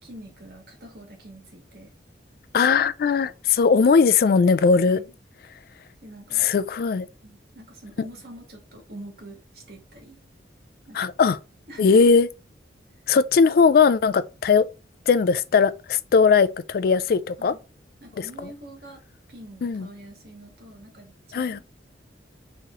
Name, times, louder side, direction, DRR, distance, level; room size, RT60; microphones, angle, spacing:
voice 1, 0.0-1.9 4.9-5.1 6.0-6.5 7.2-10.2 10.9-11.0 11.7-12.2 17.4-17.6 18.0-19.0 19.3-21.6, right 1 dB, 60° right, 1.8 m, -44 dB
voice 2, 2.5-5.0 6.4-7.1 11.0-11.4 11.8-12.3 13.1-14.7 15.1-17.5 18.2-18.3 19.6-19.9 21.3-21.6, left 5 dB, 55° left, 0.3 m, -19 dB
4.6 x 3.1 x 3.8 m
head